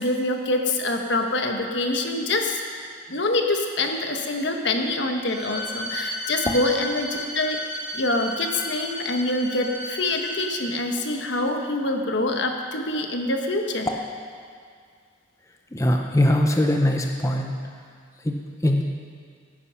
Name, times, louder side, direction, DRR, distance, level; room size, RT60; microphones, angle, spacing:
voice 1, 0.0-2.6 3.1-7.6 7.9-13.9, left 2 dB, 65° left, 3 dB, 1.3 m, -25 dB
Bowed string instrument, 5.3-10.5, left 1 dB, 20° right, 2.8 m, -33 dB
voice 2, 15.7-17.6 18.2-18.9, left 1 dB, 15° left, 2 dB, 0.7 m, -22 dB
15.5 x 9.8 x 5.8 m, 2.1 s
head